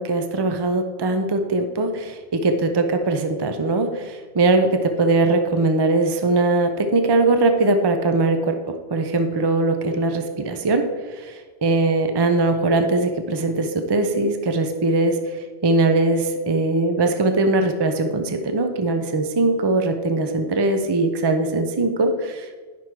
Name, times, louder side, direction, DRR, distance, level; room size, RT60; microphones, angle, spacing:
voice 1, 0.0-8.6 8.9-10.8 11.2-22.6, right 2 dB, 40° right, 6 dB, 0.3 m, -21 dB
9.9 x 5.9 x 4.6 m, 1.4 s
omnidirectional pair, 1.2 m